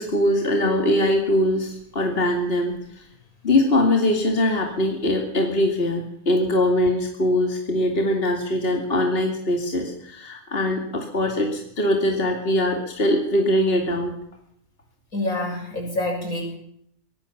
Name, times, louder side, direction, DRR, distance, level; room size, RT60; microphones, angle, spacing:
voice 1, 0.0-3.0 3.4-14.1, left 1 dB, 40° left, 2 dB, 2.7 m, -22 dB
voice 2, 15.1-16.6, left 1 dB, 65° left, 2 dB, 7.2 m, -27 dB
23.5 x 19.0 x 7.2 m, 0.69 s
omnidirectional pair, 1.6 m